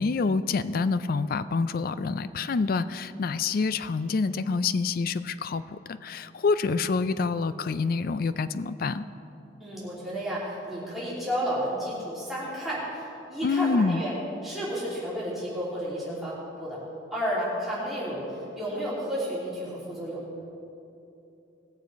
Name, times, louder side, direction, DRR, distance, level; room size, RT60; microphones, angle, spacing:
voice 1, 0.0-9.1 13.4-14.0, left 4 dB, 55° left, 13 dB, 0.4 m, -27 dB
voice 2, 9.6-14.1 14.4-16.8 17.1-20.2, equal, ahead, -9 dB, 3.2 m, -32 dB
19.5 x 7.0 x 4.6 m, 2.7 s
head